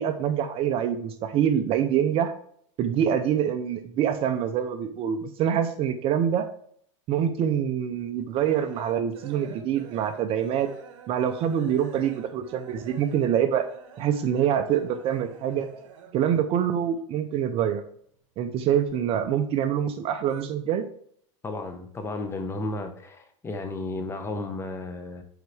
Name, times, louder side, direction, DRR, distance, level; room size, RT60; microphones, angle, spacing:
voice 1, 0.0-2.3 2.8-6.5 7.1-10.7 11.1-13.7 14.0-15.7 16.1-17.8 18.4-20.9, right 9 dB, 35° right, 9 dB, 0.6 m, -25 dB
sound 1, 7.6-16.4 16.6-17.8 18.1-19.5 19.8-20.4, right 7 dB, 70° right, 1.3 m, -48 dB
voice 2, 21.4-25.2, left 2 dB, 15° left, 6 dB, 1.0 m, -33 dB
7.9 x 4.6 x 3.3 m, 0.64 s
supercardioid pair, 130°, 16 cm